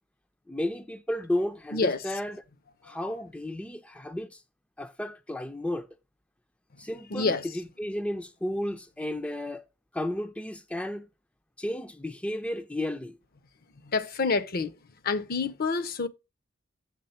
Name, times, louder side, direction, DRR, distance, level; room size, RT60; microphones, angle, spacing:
voice 1, 0.5-2.4 2.8-4.4 4.8-5.9 6.8-9.6 9.9-11.1 11.6-13.2, left 1 dB, 5° left, 0.4 m, -33 dB
voice 2, 7.1-7.5 13.8-14.7 15.0-16.1, left 4 dB, 50° left, 0.6 m, -27 dB
6.7 x 3.6 x 5.5 m
head